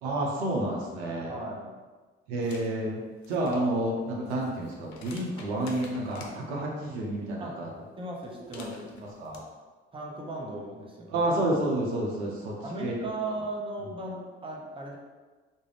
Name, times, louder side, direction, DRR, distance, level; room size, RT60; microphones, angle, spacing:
voice 1, 0.0-1.3 2.3-3.0 3.3-7.7 8.5-8.7 9.0-9.4 11.1-12.5 12.8-12.9, right 1 dB, 85° right, -2 dB, 0.6 m, -30 dB
voice 2, 1.3-1.8 7.4-7.6 8.0-8.9 9.9-11.3 12.6-15.0, right 2 dB, 15° right, -1 dB, 0.6 m, -37 dB
sound 1, 2.4-2.7 3.1-6.3 8.2-9.4, left 4 dB, 60° left, 0.5 m, -50 dB
2.4 x 2.1 x 3.2 m, 1.3 s
hypercardioid pair, 55°, 31 cm